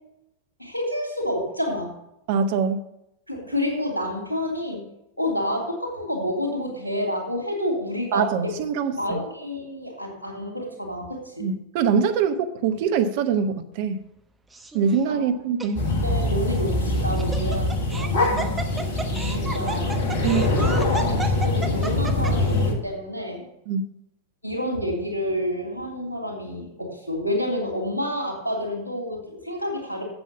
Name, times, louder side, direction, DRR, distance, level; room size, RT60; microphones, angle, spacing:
voice 1, 0.6-1.9 3.3-4.9 5.2-8.6 9.0-11.5 15.1-15.3 15.9-18.5 19.2-19.9 20.3-20.5 20.9-23.5 24.4-30.0, left 1 dB, 85° left, 1 dB, 2.7 m, -29 dB
voice 2, 2.3-2.8 8.1-9.2 11.4-14.0 14.7-15.8 20.2-20.4 23.7-23.8, right 6 dB, 50° right, 9 dB, 0.9 m, -23 dB
Laughter, 14.5-15.0 15.6-15.7 16.9-22.5, right 3 dB, 10° right, 1.0 m, -33 dB
sound 1, 15.8-22.7, left 2 dB, 55° left, 1.9 m, -23 dB
7.9 x 7.5 x 7.0 m, 0.84 s
figure-of-eight pair, 90°, 0 cm